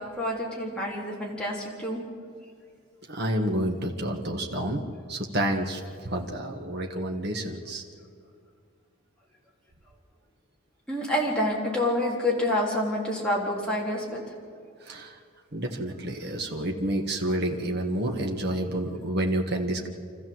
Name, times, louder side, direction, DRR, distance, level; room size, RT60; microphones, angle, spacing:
voice 1, 0.0-2.0 10.9-14.2, left 1 dB, 5° left, -4 dB, 3.6 m, -28 dB
voice 2, 3.1-4.8 5.1-7.8 14.9-15.1 15.5-19.9, right 1 dB, 50° right, 2 dB, 1.6 m, -29 dB
26.0 x 14.5 x 7.8 m, 2.3 s
head